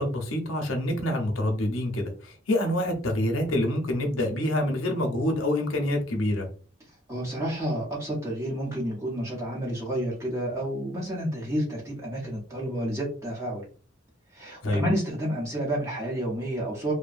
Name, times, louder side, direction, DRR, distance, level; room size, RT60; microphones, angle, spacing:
voice 1, 0.0-6.5 14.6-14.9, left 1 dB, 80° left, 0.7 m, -26 dB
voice 2, 7.1-13.6 14.3-16.9, right 1 dB, 15° right, 0.8 m, -30 dB
2.7 x 2.2 x 2.5 m
head